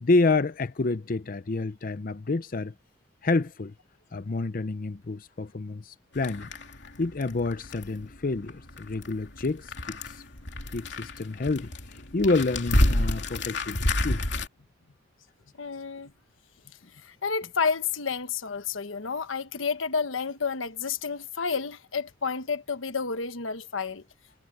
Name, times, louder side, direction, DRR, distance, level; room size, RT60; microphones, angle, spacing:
voice 1, 0.0-2.7 3.2-3.7 4.1-6.5 7.0-10.2 10.7-14.2, left 3 dB, 45° left, 0.6 m, -28 dB
sound 1, 6.2-14.5, left 1 dB, 60° left, 3.0 m, -30 dB
voice 2, 15.6-16.1 17.0-24.0, left 5 dB, 90° left, 1.2 m, -30 dB
head